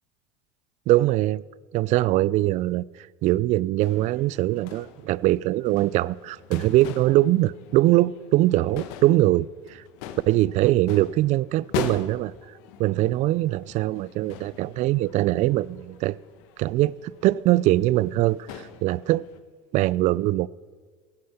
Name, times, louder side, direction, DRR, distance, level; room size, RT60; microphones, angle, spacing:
voice 1, 0.9-1.4 1.7-2.8 3.2-9.8 10.3-12.3 12.8-16.2 16.6-18.4 18.8-19.2 19.7-20.5, right 16 dB, 45° right, 0.4 m, -22 dB
sound 1, 3.8-19.4, left 9 dB, 70° left, 1.2 m, -41 dB
16.0 x 9.7 x 5.8 m
supercardioid pair, 100°, 16 cm